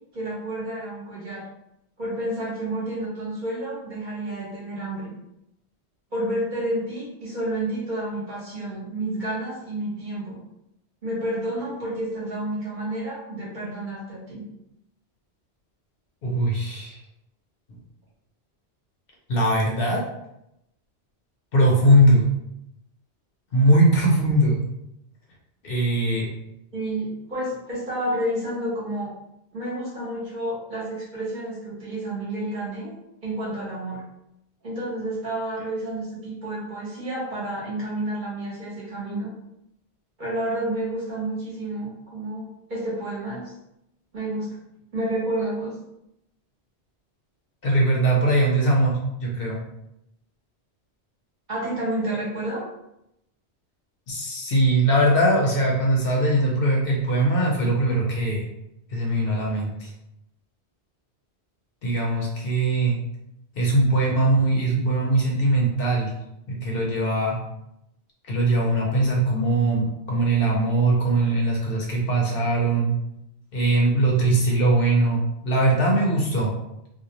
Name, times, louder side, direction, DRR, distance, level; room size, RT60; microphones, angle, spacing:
voice 1, 0.1-1.5 2.0-5.1 6.1-10.4 11.0-14.4 26.7-29.1 29.5-32.9 33.2-34.0 34.6-39.3 40.2-43.5 44.1-44.6 44.9-45.7 51.5-52.7, right 1 dB, 50° right, -7 dB, 1.1 m, -30 dB
voice 2, 16.2-17.0 19.3-20.0 21.5-22.2 23.5-24.6 25.6-26.3 47.6-49.6 54.1-58.4 58.9-59.9 61.8-63.0 63.6-66.1 66.5-67.4 68.3-72.9 73.5-76.5, right 1 dB, 65° left, -2 dB, 0.8 m, -21 dB
2.5 x 2.1 x 2.8 m, 0.83 s
omnidirectional pair, 1.1 m